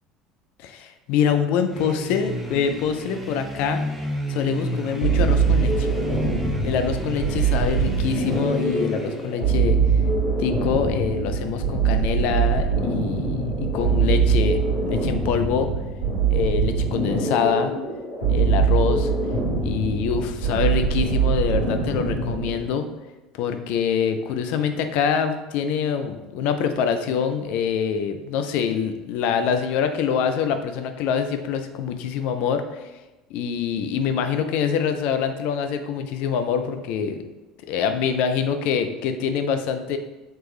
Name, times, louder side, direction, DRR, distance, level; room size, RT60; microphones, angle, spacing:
voice 1, 0.6-3.8 4.3-5.9 6.6-9.8 10.4-15.7 16.3-17.7 18.3-19.1 19.6-22.9 23.3-32.9 33.3-37.2 37.7-40.0, left 7 dB, 55° left, 8 dB, 0.3 m, -25 dB
sound 1, 1.7-9.5, equal, 5° right, 0.6 m, -32 dB
Slow Beast (Lowpass), 5.0-22.6, right 5 dB, 90° left, 1.1 m, -23 dB
3.2 x 3.0 x 3.0 m, 1.1 s
figure-of-eight pair, 65°, 3 cm